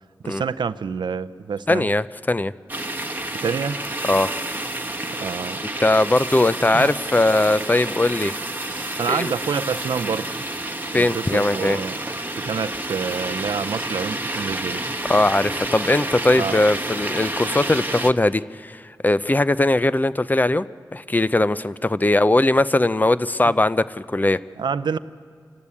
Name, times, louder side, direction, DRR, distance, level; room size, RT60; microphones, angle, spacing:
voice 1, 0.2-1.9 3.3-3.8 5.2-5.6 6.7-7.0 8.7-10.3 10.9-12.0 12.4-14.8 16.4-16.6 24.6-25.0, right 6 dB, 80° right, 15 dB, 0.6 m, -27 dB
voice 2, 1.7-2.5 4.0-4.3 5.8-8.3 9.1-9.3 10.9-11.8 15.1-20.6 20.9-24.4, left 2 dB, 25° left, 15 dB, 0.5 m, -20 dB
sound 1, 2.7-18.1, right 1 dB, 25° right, 1.1 m, -29 dB
28.0 x 12.5 x 8.5 m, 2.2 s
cardioid pair, 55°, 8 cm